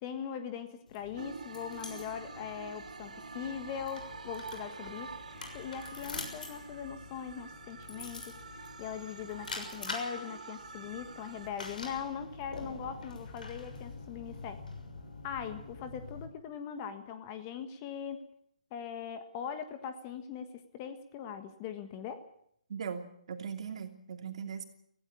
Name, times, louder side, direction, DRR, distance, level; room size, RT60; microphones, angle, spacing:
voice 1, 0.0-5.1 5.5-14.6 15.2-18.3 18.7-22.2, left 8 dB, 20° left, 9 dB, 1.5 m, -41 dB
sound 1, 0.9-16.3, left 3 dB, 75° left, 6.5 m, -46 dB
sound 2, 1.2-11.5, right 4 dB, 70° right, 4.0 m, -47 dB
voice 2, 22.7-24.6, right 6 dB, 45° right, 6 dB, 2.8 m, -39 dB
17.5 x 16.5 x 9.8 m, 0.70 s
hypercardioid pair, 160°, 4 cm